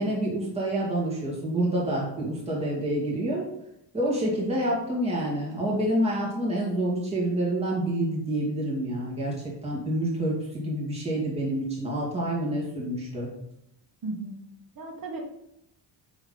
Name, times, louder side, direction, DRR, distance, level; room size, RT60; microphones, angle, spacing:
voice 1, 0.0-3.4 3.9-9.3 9.6-13.3, right 1 dB, 15° right, -5 dB, 2.2 m, -27 dB
voice 2, 14.0-14.4 14.8-15.2, right 2 dB, 50° right, 0 dB, 1.3 m, -36 dB
9.4 x 3.6 x 3.9 m, 0.82 s
wide cardioid pair, 130°, 45 cm